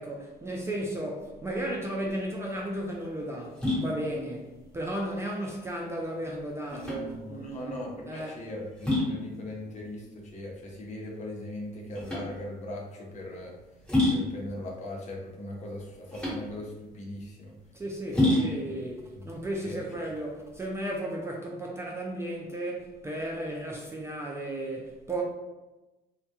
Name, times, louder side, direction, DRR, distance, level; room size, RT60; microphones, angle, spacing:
voice 1, 0.0-7.8 8.1-8.4 17.7-25.2, right 1 dB, 15° right, 0.3 m, -34 dB
sound 1, 2.0-20.6, left 1 dB, 5° left, 1.2 m, -32 dB
voice 2, 6.7-13.5 14.1-17.5 18.1-18.7 19.2-19.3 19.6-19.8, left 1 dB, 45° left, 0.7 m, -39 dB
2.2 x 2.1 x 2.8 m
cardioid pair, 110°, 17 cm